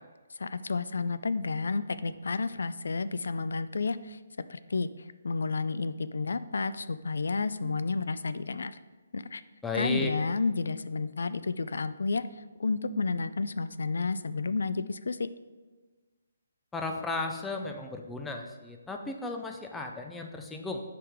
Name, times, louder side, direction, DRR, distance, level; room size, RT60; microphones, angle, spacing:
voice 1, 0.4-4.2 4.5-8.8 9.1-9.4 9.7-12.2 12.6-15.3, left 4 dB, 80° left, 14 dB, 0.3 m, -31 dB
voice 2, 9.6-10.1 16.7-20.8, left 3 dB, 5° left, 3 dB, 0.4 m, -35 dB
6.9 x 4.9 x 3.5 m, 1.3 s
hypercardioid pair, 165°, 0 cm